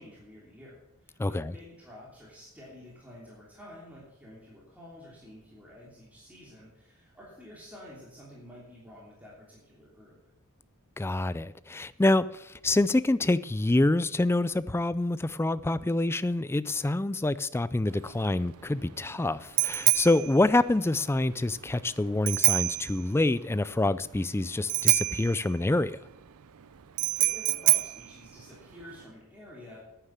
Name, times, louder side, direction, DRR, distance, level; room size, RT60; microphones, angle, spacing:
voice 1, 0.0-10.2 27.1-29.8, left 1 dB, 5° right, 3.1 m, -50 dB
voice 2, 1.2-1.5 11.0-26.0, left 2 dB, 10° left, 0.3 m, -26 dB
Bicycle bell, 17.9-29.0, right 18 dB, 75° right, 0.5 m, -29 dB
10.0 x 9.2 x 7.4 m
head